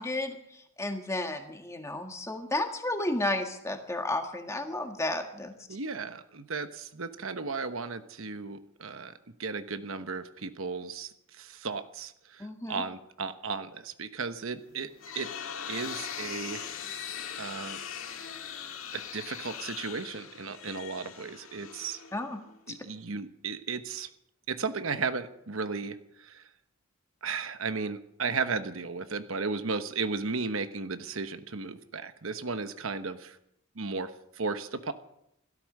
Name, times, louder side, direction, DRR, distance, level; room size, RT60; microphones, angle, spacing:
voice 1, 0.0-5.5 12.4-12.8 22.1-22.4 22.7-22.8, left 2 dB, 15° left, 5 dB, 1.7 m, -32 dB
voice 2, 5.7-9.1 9.4-15.3 15.7-16.6 17.4-17.8 18.9-22.0 22.7-24.1 24.5-26.5 27.2-33.4 33.8-34.9, right 4 dB, 70° right, 10 dB, 1.1 m, -35 dB
sound 1, 14.7-22.5, left 8 dB, 70° left, 1.8 m, -40 dB
16.5 x 13.0 x 6.6 m, 0.78 s
head